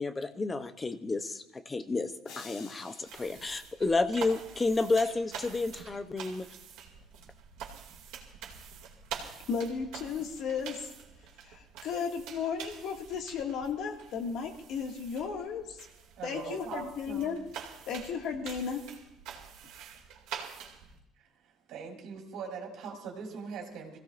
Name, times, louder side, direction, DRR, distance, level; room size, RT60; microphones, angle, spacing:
voice 1, 0.0-6.5, left 3 dB, 15° left, 9 dB, 0.7 m, -31 dB
sound 1, 2.2-4.6, left 6 dB, 85° left, 2.2 m, -52 dB
sound 2, 3.0-21.0, right 8 dB, 80° right, 2.4 m, -46 dB
voice 2, 9.5-10.9 11.4-15.9 16.2-17.4 17.9-18.8, left 6 dB, 60° left, 2 dB, 1.9 m, -34 dB
voice 3, 16.2-17.3 21.7-24.0, right 5 dB, 65° right, 0 dB, 3.2 m, -41 dB
25.0 x 16.5 x 2.5 m, 0.83 s
cardioid pair, 165°, 0 cm